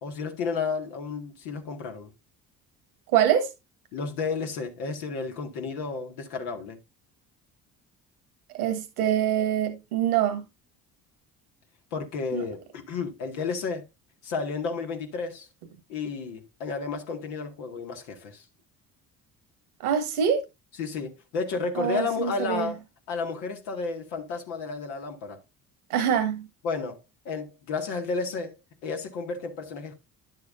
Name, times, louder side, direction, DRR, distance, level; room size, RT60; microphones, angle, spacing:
voice 1, 0.0-2.1 3.9-6.8 11.9-13.9 14.2-15.5 15.9-18.4 20.8-22.8 23.1-25.4 26.6-27.0 27.3-29.9, left 4 dB, 75° left, 2.1 m, -32 dB
voice 2, 3.1-3.5 8.5-10.4 12.3-12.4 19.8-20.4 21.8-22.7 25.9-26.5, right 9 dB, 90° right, 1.7 m, -24 dB
11.0 x 7.6 x 2.6 m
hypercardioid pair, 55°, 43 cm